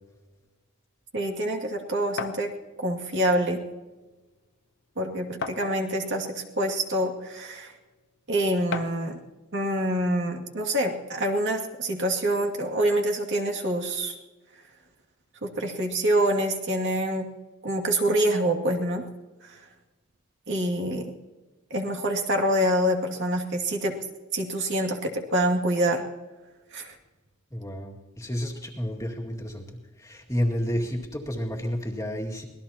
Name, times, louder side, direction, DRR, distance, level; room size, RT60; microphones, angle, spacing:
voice 1, 1.1-2.5 2.8-3.6 5.0-7.7 8.3-9.2 9.5-14.1 15.4-17.3 17.6-19.0 19.5-19.6 20.5-21.1 21.7-23.9 24.3-26.1 26.7-27.0, right 1 dB, 60° right, 1 dB, 2.4 m, -26 dB
sound 1, 2.2-2.5 3.6-3.7 4.1-4.2 5.4-6.0 6.9-7.0 8.7-9.1, left 5 dB, 60° left, 0.8 m, -34 dB
voice 2, 27.5-29.7 30.0-32.5, equal, 15° left, 0 dB, 2.1 m, -30 dB
25.5 x 19.0 x 2.9 m, 1.2 s
head